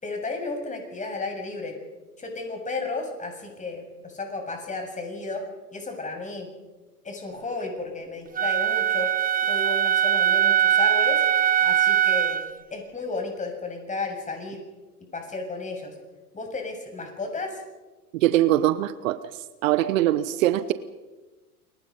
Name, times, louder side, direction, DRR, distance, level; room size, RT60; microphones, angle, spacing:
voice 1, 0.0-1.7 2.2-5.4 5.7-6.5 7.0-9.1 9.5-11.2 11.6-12.4 12.7-14.6 15.1-15.9 16.3-17.6, left 3 dB, 15° left, 3 dB, 7.2 m, -33 dB
Wind instrument woodwind instrument, 8.4-12.5, right 10 dB, 20° right, 1.4 m, -21 dB
voice 2, 18.1-19.2 19.6-20.7, right 14 dB, 60° right, 14 dB, 1.2 m, -22 dB
28.5 x 23.5 x 5.5 m, 1.2 s
figure-of-eight pair, 90°, 46 cm